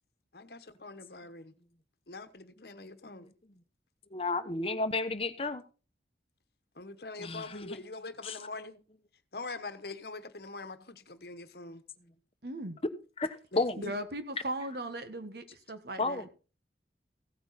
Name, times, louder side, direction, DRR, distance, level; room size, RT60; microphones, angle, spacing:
voice 1, 0.3-1.5 2.1-3.3 6.7-8.8 9.3-11.8 13.5-14.0, left 3 dB, 65° left, 1.2 m, -43 dB
voice 2, 4.1-5.6 7.2-7.8 8.2-8.4 13.2-13.8 16.0-16.3, left 3 dB, 30° left, 1.0 m, -32 dB
voice 3, 12.4-12.8 13.8-16.3, right 1 dB, 65° right, 1.6 m, -38 dB
16.0 x 9.0 x 4.2 m
head